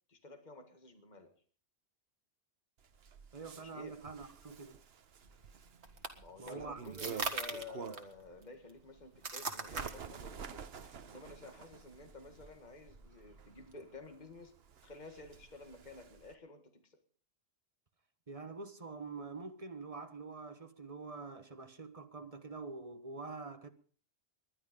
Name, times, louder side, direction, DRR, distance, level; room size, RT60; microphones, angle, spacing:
voice 1, 0.1-1.3 3.5-4.0 6.2-10.7 11.1-14.5 14.8-17.0, left 2 dB, 40° left, 1.9 m, -51 dB
Bird, 2.8-8.2 8.7-16.3, right 6 dB, 70° right, 1.2 m, -50 dB
voice 2, 3.3-4.8 6.4-6.8 18.3-23.7, right 4 dB, 35° right, 1.4 m, -46 dB
sound 1, 5.2-13.8, right 4 dB, 85° right, 2.1 m, -44 dB
20.5 x 11.0 x 5.2 m
omnidirectional pair, 1.1 m